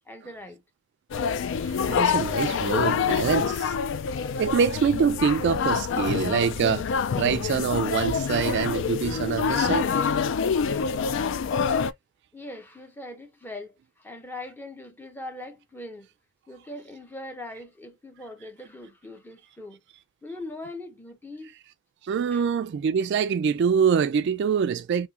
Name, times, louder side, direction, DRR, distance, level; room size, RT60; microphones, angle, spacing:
voice 1, 0.1-0.6 12.3-16.1 16.5-19.8 20.2-21.5 22.3-22.4, left 1 dB, 10° left, 0.7 m, -41 dB
sound 1, 1.1-11.9, left 6 dB, 65° left, 0.4 m, -26 dB
voice 2, 1.5-3.7 4.4-6.9 7.1-9.9 22.0-25.1, right 6 dB, 55° right, 0.3 m, -25 dB
3.6 x 2.7 x 2.8 m
head